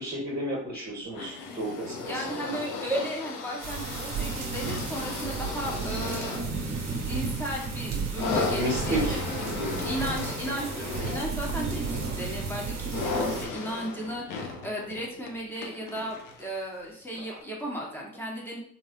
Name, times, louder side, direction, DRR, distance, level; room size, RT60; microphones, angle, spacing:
voice 1, 0.0-2.2 8.6-9.8, right 1 dB, 30° right, -3 dB, 1.1 m, -32 dB
sound 1, 1.1-16.6 17.4-17.5, left 4 dB, 60° left, 0.7 m, -36 dB
voice 2, 2.0-9.2 9.8-18.6, right 1 dB, 5° left, -4 dB, 1.3 m, -35 dB
sound 2, 3.6-13.5, right 4 dB, 45° right, 0.9 m, -33 dB
3.1 x 2.8 x 2.5 m, 0.66 s
hypercardioid pair, 55°, 38 cm